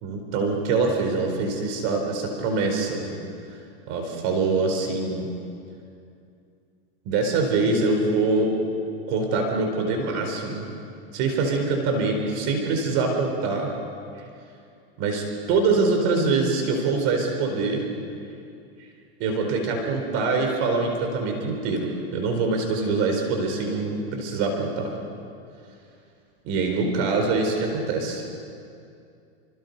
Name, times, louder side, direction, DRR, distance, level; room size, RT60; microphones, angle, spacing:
voice 1, 0.0-3.1 3.9-5.3 7.0-8.5 9.1-10.7 11.1-13.7 15.0-17.8 19.2-24.9 26.4-28.2, right 3 dB, 50° right, 3 dB, 4.3 m, -24 dB
28.5 x 26.5 x 5.4 m, 2.5 s
supercardioid pair, 130°, 31 cm